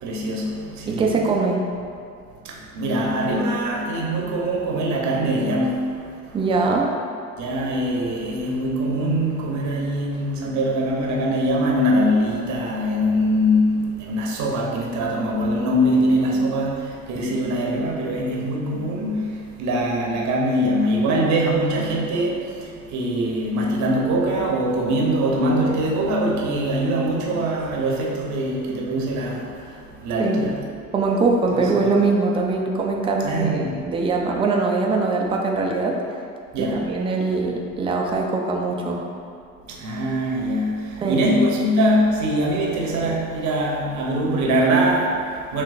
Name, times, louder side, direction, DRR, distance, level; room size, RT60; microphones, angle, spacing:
voice 1, 0.0-1.2 2.4-6.4 7.4-30.7 31.5-31.9 33.2-33.8 36.5-37.0 39.7-45.6, equal, 45° right, -2 dB, 0.8 m, -23 dB
voice 2, 0.9-1.6 6.3-6.9 30.2-30.4 30.9-36.0 36.6-39.1 41.0-41.2, right 3 dB, 15° right, 0 dB, 0.4 m, -22 dB
6.4 x 2.1 x 2.4 m, 2.3 s
hypercardioid pair, 70°, 40 cm